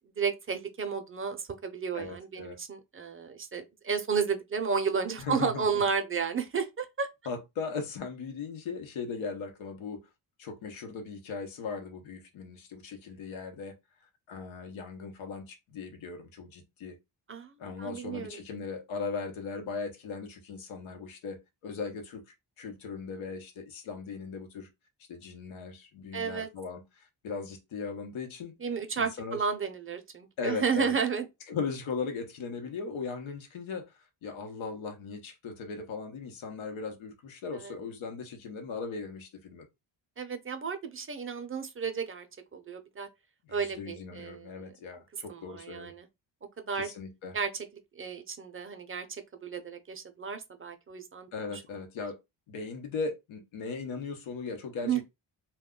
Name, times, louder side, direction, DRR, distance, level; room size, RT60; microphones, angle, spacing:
voice 1, 0.2-7.1 17.3-17.5 17.8-18.4 26.1-26.5 28.6-31.2 37.6-37.7 40.2-42.3 42.5-43.1 43.5-44.5 45.3-46.0 46.7-46.9 47.3-47.5 48.0-49.0 49.4-51.3 54.8-55.0, right 6 dB, 30° right, 0.4 m, -32 dB
voice 2, 1.9-2.6 5.2-5.8 7.3-10.1 10.4-13.7 14.3-17.0 17.6-22.2 22.6-24.7 25.1-28.6 29.0-29.5 30.4-31.0 31.5-33.9 34.2-39.7 43.4-45.9 46.7-47.4 51.3-52.2 52.5-55.0, left 4 dB, 90° left, 0.9 m, -38 dB
2.2 x 2.2 x 3.6 m
cardioid pair, 100°, 46 cm